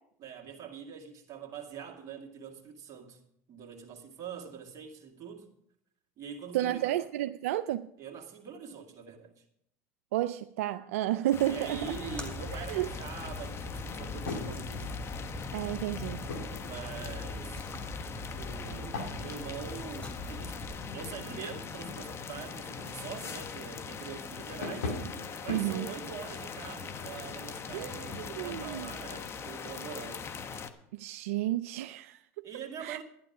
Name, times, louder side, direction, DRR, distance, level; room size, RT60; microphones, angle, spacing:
voice 1, 0.2-3.2 3.5-5.5 6.2-7.0 8.0-9.4 11.4-14.9 16.6-17.6 18.3-24.9 25.4-30.3 32.4-33.0, right 7 dB, 50° right, 2.2 m, -44 dB
voice 2, 6.5-7.8 10.1-11.8 12.5-12.9 15.5-16.2 25.5-25.9 27.7-28.9 30.9-32.4 32.8-33.0, right 14 dB, 85° right, 0.4 m, -32 dB
sound 1, 11.3-30.7, left 5 dB, 35° left, 1.2 m, -41 dB
Splash splatter, 11.8-20.7, left 1 dB, 15° left, 2.7 m, -42 dB
sound 2, 14.0-27.4, left 2 dB, 85° left, 2.1 m, -44 dB
12.5 x 11.0 x 4.8 m
supercardioid pair, 90°, 7 cm